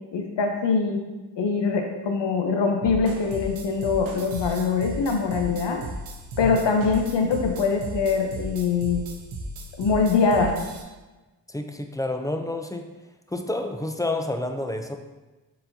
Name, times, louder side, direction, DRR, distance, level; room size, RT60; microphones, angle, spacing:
voice 1, 0.1-1.0 1.4-5.8 6.4-9.0 9.8-10.6, left 5 dB, 65° left, 3 dB, 0.8 m, -23 dB
sound 1, 2.8-10.8, right 1 dB, 80° right, 0.7 m, -36 dB
voice 2, 11.5-12.9 13.3-15.0, left 2 dB, 10° left, 5 dB, 0.4 m, -29 dB
4.3 x 4.2 x 2.6 m, 1.2 s
cardioid pair, 40°, 46 cm